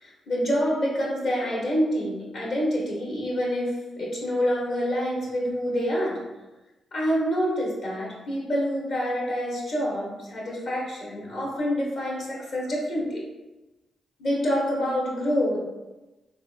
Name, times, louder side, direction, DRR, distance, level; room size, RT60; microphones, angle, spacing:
voice 1, 0.0-6.2 6.9-13.2 14.2-15.6, equal, 70° left, -4 dB, 1.0 m, -27 dB
3.6 x 2.7 x 2.4 m, 1.1 s
hypercardioid pair, 45°, 0 cm